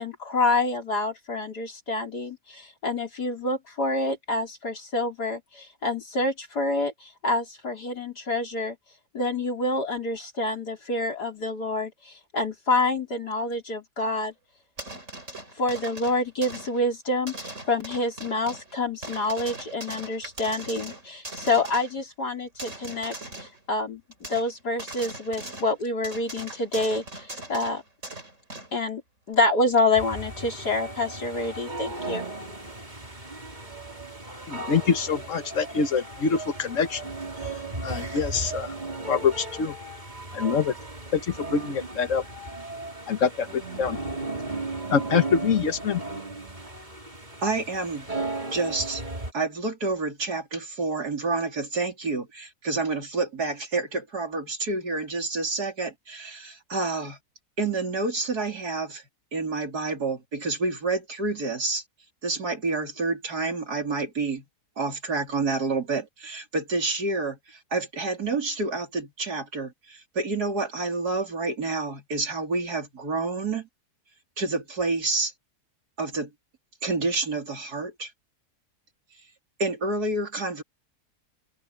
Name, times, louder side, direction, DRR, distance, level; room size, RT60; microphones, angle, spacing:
voice 1, 0.0-8.8 9.1-14.3 15.6-24.0 24.3-27.8 28.7-29.0 29.3-32.3, left 2 dB, 85° left, 5.2 m, -27 dB
sound 1, 14.8-16.8 17.3-18.7 19.0-22.0 22.6-23.6 24.1-24.5 24.8-25.7 26.0-28.8 29.3-29.4, right 2 dB, 50° right, 5.9 m, -40 dB
sound 2, 29.9-49.3, right 2 dB, 25° right, 3.7 m, -36 dB
voice 2, 34.5-37.0 37.8-38.7 39.1-39.7 40.3-40.7 41.1-42.2 43.1-44.0 44.9-46.0, left 6 dB, 55° left, 1.6 m, -25 dB
voice 3, 47.4-48.1 48.5-49.0 49.3-57.2 57.6-59.0 59.3-61.8 62.2-64.4 64.8-73.7 74.4-75.3 76.0-76.3 76.8-78.1 79.6-80.6, right 3 dB, 75° right, 4.1 m, -28 dB
omnidirectional pair, 1.7 m